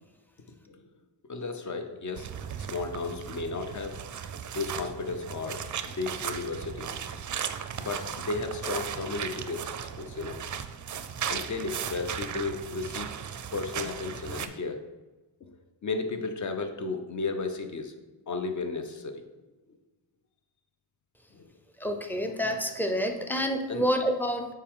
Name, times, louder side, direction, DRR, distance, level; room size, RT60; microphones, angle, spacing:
voice 1, 1.3-2.3 2.6-4.0 4.5-6.9 7.8-9.6 10.0-10.4 11.3-13.1 13.5-14.8 15.4-15.5 15.8-17.9 18.3-19.2 21.3-21.4 23.7-23.8, left 3 dB, 40° left, 6 dB, 0.8 m, -34 dB
sound 1, 2.2-14.5, right 8 dB, 40° right, 0.4 m, -36 dB
voice 2, 21.8-24.5, equal, 5° left, 4 dB, 0.6 m, -28 dB
7.3 x 4.7 x 3.7 m, 1.2 s
wide cardioid pair, 115°, 45 cm